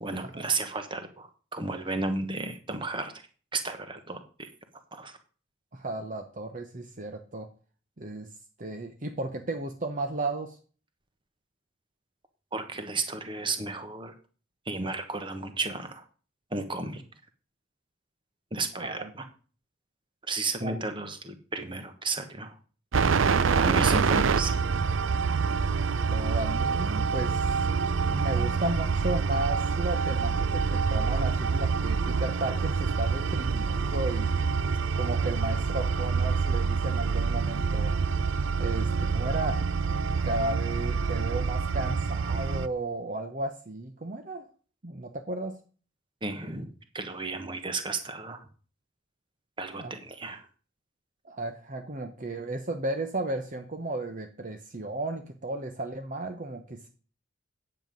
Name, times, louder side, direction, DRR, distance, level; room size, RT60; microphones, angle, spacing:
voice 1, 0.0-3.1 3.5-4.5 4.9-5.2 12.5-14.1 14.6-16.0 16.5-17.0 18.5-19.3 20.2-22.5 23.6-24.5 46.2-48.5 49.6-50.5, right 3 dB, 25° right, 8 dB, 1.3 m, -33 dB
voice 2, 5.7-7.5 8.0-8.3 8.6-10.6 18.8-19.1 20.6-20.8 23.3-23.9 26.1-27.7 28.0-34.4 35.0-37.9 38.6-39.7 40.2-44.5 44.8-45.6 49.7-49.9 51.2-56.9, right 2 dB, 40° right, 6 dB, 0.9 m, -34 dB
sound 1, 22.9-42.7, right 5 dB, 80° right, 0.6 m, -26 dB
9.9 x 7.9 x 5.2 m, 0.38 s
head